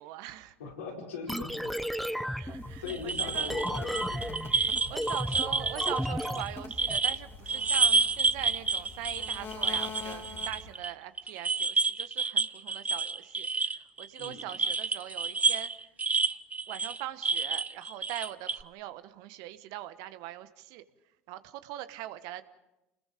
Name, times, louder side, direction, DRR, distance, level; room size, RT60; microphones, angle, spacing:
voice 1, 0.0-0.6 2.3-3.5 4.9-15.7 16.7-20.8 21.3-22.4, right 14 dB, 65° right, 12 dB, 1.2 m, -42 dB
voice 2, 0.6-1.7 2.6-4.4 14.2-14.4, left 5 dB, 85° left, -2 dB, 4.9 m, -40 dB
sound 1, 1.3-7.0, equal, ahead, 1.0 m, -34 dB
sound 2, 2.4-10.8, left 4 dB, 35° left, 2.3 m, -45 dB
sound 3, 2.9-7.2 7.5-10.9 11.2-18.6, right 4 dB, 20° right, 0.7 m, -29 dB
29.0 x 21.0 x 5.1 m, 0.97 s
hypercardioid pair, 75°, 7 cm